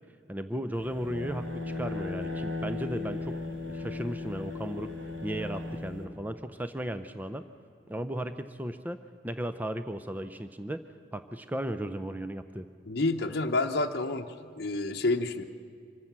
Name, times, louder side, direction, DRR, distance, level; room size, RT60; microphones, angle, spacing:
voice 1, 0.3-3.4 3.6-4.9 5.2-7.4 7.9-9.0 9.2-10.8 11.1-12.7, right 1 dB, 10° right, 10 dB, 0.5 m, -35 dB
sound 1, 0.7-6.0, left 3 dB, 80° right, 2.6 m, -36 dB
voice 2, 12.9-14.3 14.6-15.4, left 2 dB, 55° left, 3 dB, 0.8 m, -28 dB
25.0 x 16.0 x 7.4 m, 2.4 s
head